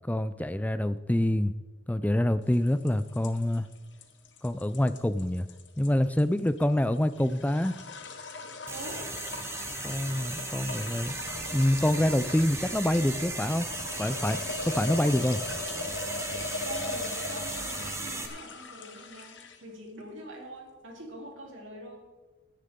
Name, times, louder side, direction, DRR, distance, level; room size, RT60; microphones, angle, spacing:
voice 1, 0.1-1.5 1.9-3.7 4.4-5.5 5.8-7.8 9.8-11.1 11.5-13.7 14.0-15.4, left 1 dB, 10° left, 12 dB, 0.4 m, -26 dB
sound 1, 2.5-19.7, left 4 dB, 65° left, 1.2 m, -40 dB
sound 2, 8.7-18.3, right 3 dB, 15° right, 1.0 m, -37 dB
voice 2, 8.7-9.0 16.6-22.0, right 1 dB, 85° right, -1 dB, 3.5 m, -44 dB
16.0 x 10.5 x 3.7 m, 1.2 s
head